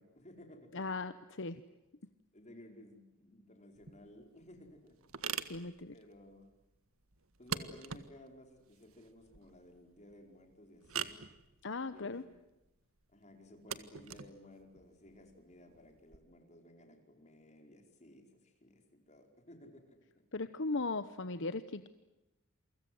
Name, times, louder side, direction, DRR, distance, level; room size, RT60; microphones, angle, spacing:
voice 1, 0.0-1.2 2.3-5.0 5.9-6.5 7.4-11.2 11.9-12.3 13.1-20.0, left 1 dB, 35° left, 4 dB, 5.0 m, -57 dB
voice 2, 0.7-1.6 5.5-5.9 11.6-12.2 20.3-21.9, left 3 dB, 60° left, 12 dB, 1.0 m, -38 dB
sound 1, 3.7-16.2, right 7 dB, 85° right, 1.7 m, -45 dB
29.0 x 24.5 x 7.9 m, 0.95 s
head